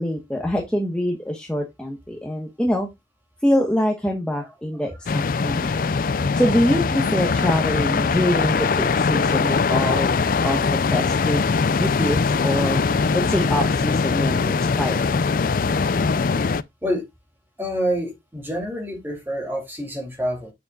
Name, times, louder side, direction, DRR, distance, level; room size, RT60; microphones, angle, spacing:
voice 1, 0.0-2.9 3.4-5.7 6.3-10.1 10.4-15.0, equal, 5° left, 1.3 m, -25 dB
sound 1, 5.1-16.6, left 4 dB, 50° left, 0.4 m, -21 dB
voice 2, 17.6-20.5, equal, 10° right, 2.8 m, -27 dB
9.4 x 7.0 x 2.4 m
head